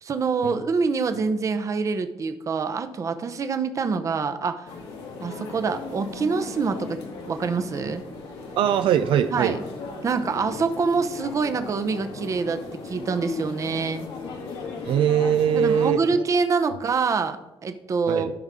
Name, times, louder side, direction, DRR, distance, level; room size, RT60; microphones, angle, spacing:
voice 1, 0.0-4.7 5.2-8.0 9.3-9.6 10.0-14.1 15.6-18.3, right 4 dB, 35° right, 8 dB, 0.8 m, -26 dB
sound 1, 4.7-15.9, left 4 dB, 80° left, 2.1 m, -37 dB
voice 2, 8.6-9.6 14.9-16.2 18.1-18.3, right 9 dB, 70° right, 9 dB, 0.5 m, -22 dB
13.0 x 5.4 x 3.7 m, 0.97 s
cardioid pair, 125°, 9 cm